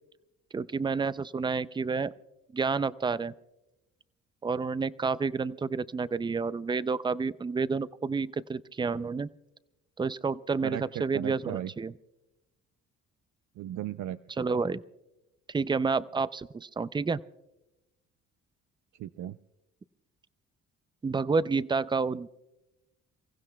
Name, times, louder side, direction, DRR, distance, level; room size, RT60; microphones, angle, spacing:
voice 1, 0.5-2.1 2.5-3.3 4.4-9.3 10.0-11.9 14.4-14.8 15.5-17.2 21.0-22.3, right 4 dB, 15° right, 16 dB, 0.4 m, -29 dB
voice 2, 10.6-11.7 13.6-14.2 19.0-19.4, right 12 dB, 70° right, 12 dB, 0.5 m, -36 dB
29.5 x 15.5 x 2.2 m, 0.97 s
cardioid pair, 90°, 30 cm